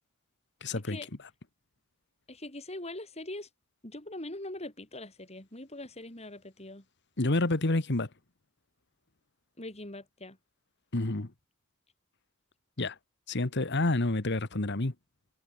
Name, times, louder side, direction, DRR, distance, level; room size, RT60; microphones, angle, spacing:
voice 1, 0.6-1.0 7.2-8.1 10.9-11.3 12.8-12.9 13.3-14.9, left 2 dB, 55° left, 1.5 m, -28 dB
voice 2, 2.3-3.5 3.8-6.8 9.6-10.4, left 1 dB, 30° left, 5.0 m, -42 dB
head